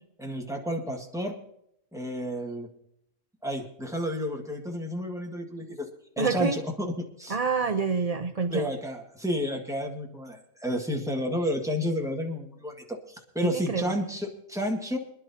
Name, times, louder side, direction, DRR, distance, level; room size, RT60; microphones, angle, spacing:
voice 1, 0.2-1.4 1.9-2.7 3.4-5.9 6.2-7.4 8.5-15.0, equal, ahead, 1 dB, 1.7 m, -31 dB
voice 2, 6.2-6.6 7.3-8.7 13.4-14.0, right 5 dB, 50° right, 7 dB, 0.4 m, -27 dB
25.5 x 11.0 x 2.8 m, 0.73 s
omnidirectional pair, 1.5 m